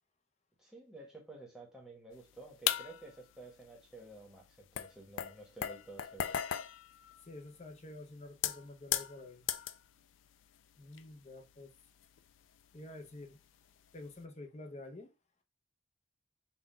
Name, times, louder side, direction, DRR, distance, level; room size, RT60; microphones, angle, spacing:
voice 1, 0.6-6.4, right 2 dB, 5° right, 1.1 m, -52 dB
sound 1, 2.7-3.2 4.2-4.3 4.7-7.8 8.3-9.9 10.3-10.6 10.9-11.0 12.0-12.8 13.1-13.3 14.1-14.2, left 10 dB, 80° left, 0.3 m, -37 dB
voice 2, 7.2-9.5 10.8-11.7 12.7-13.4 13.9-15.1, left 2 dB, 35° left, 0.7 m, -49 dB
4.1 x 2.3 x 4.2 m
head